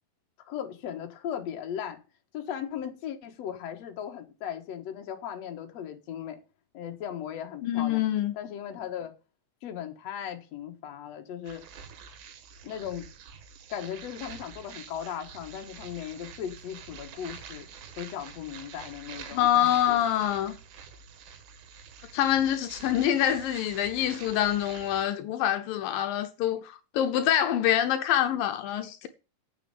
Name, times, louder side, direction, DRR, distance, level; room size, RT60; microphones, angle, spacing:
voice 1, 0.5-2.0 2.3-6.4 6.7-8.0 8.3-9.1 9.6-11.6 12.6-13.1 13.7-17.7 18.0-20.0, left 9 dB, 55° left, 2.4 m, -37 dB
voice 2, 7.6-8.4 19.3-20.6 22.1-29.1, left 11 dB, 80° left, 2.6 m, -26 dB
sound 1, 11.4-25.1, right 6 dB, 90° right, 3.2 m, -47 dB
9.0 x 6.5 x 8.5 m
omnidirectional pair, 4.0 m